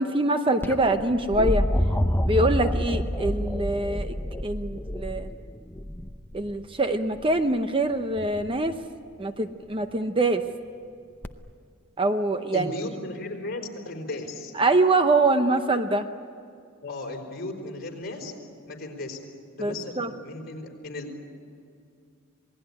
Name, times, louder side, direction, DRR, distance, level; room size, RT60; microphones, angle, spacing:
voice 1, 0.0-1.6 2.2-4.2 4.4-5.3 6.3-8.7 9.2-10.4 12.0-12.7 14.5-16.1 19.6-20.1, right 2 dB, 25° right, 8 dB, 0.8 m, -24 dB
sound 1, 0.6-6.5 8.2-8.7 11.2-11.3, equal, 10° left, 0.7 m, -27 dB
voice 2, 12.5-14.5 16.8-18.3 18.7-19.2 19.5-21.2, left 2 dB, 45° left, 2 dB, 4.5 m, -35 dB
27.0 x 19.0 x 9.9 m, 2.4 s
head